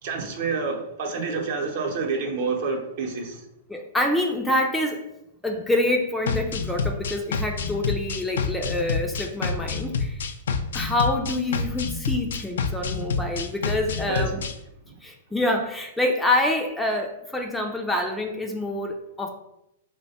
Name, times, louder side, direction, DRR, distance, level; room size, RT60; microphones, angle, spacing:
voice 1, 0.0-3.4 14.0-14.3 14.9-15.0, right 4 dB, 60° right, 1 dB, 0.7 m, -28 dB
voice 2, 3.7-5.0 5.4-10.2 10.7-14.4 15.0-19.3, left 1 dB, 5° left, 2 dB, 0.4 m, -26 dB
sound 1, 6.3-14.5, left 4 dB, 80° left, 0.3 m, -28 dB
2.7 x 2.2 x 4.0 m, 0.85 s
hypercardioid pair, 125°, 0 cm